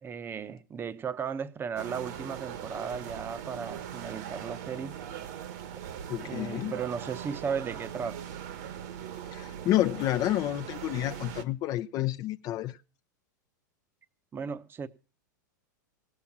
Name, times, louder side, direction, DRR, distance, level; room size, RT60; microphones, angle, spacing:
voice 1, 0.0-5.0 6.2-8.2 14.3-14.9, right 6 dB, 20° right, 0.9 m, -35 dB
sound 1, 1.8-11.4, right 9 dB, 60° right, 1.4 m, -40 dB
voice 2, 6.1-6.7 9.3-12.8, left 14 dB, 40° left, 0.7 m, -29 dB
17.0 x 7.4 x 7.2 m
hypercardioid pair, 105°, 10 cm